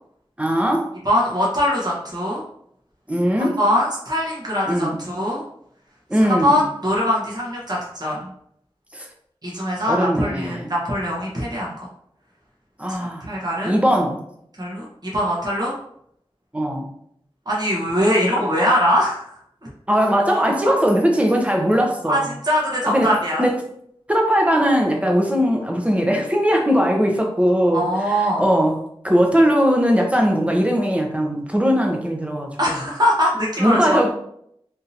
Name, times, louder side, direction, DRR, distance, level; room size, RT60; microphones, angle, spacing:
voice 1, 0.4-0.9 3.1-3.6 4.7-5.0 6.1-6.6 8.9-9.1 9.9-10.7 12.8-13.3 13.6-14.2 16.5-16.9 18.2-18.4 19.9-22.3 22.9-23.1 23.4-23.6 24.1-28.8 29.0-32.8 33.6-34.1, equal, 15° right, 1 dB, 0.7 m, -19 dB
voice 2, 1.0-2.4 3.4-5.4 6.2-8.3 9.4-11.8 12.9-13.8 14.6-15.7 17.5-19.3 22.0-23.4 27.7-28.4 32.6-34.1, equal, 40° right, -5 dB, 1.1 m, -22 dB
3.6 x 2.6 x 2.8 m, 0.71 s
wide cardioid pair, 45°, 10 cm